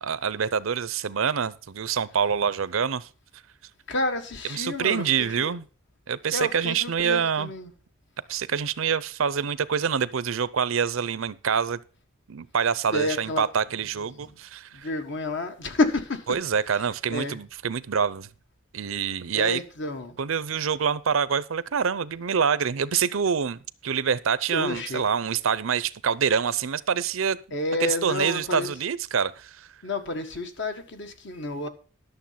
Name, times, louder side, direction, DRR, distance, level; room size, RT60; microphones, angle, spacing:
voice 1, 0.0-3.1 4.5-5.6 6.1-7.5 8.3-11.8 12.3-14.9 16.3-18.3 18.7-19.6 20.2-27.4 27.8-29.7, right 7 dB, 70° right, 0.6 m, -26 dB
voice 2, 3.9-5.5 6.3-7.7 12.9-13.5 13.8-14.4 14.7-16.4 17.1-17.4 18.9-19.0 19.3-20.2 24.5-25.0 27.5-28.7 29.8-31.7, left 2 dB, 60° left, 1.5 m, -30 dB
11.5 x 6.8 x 5.7 m
head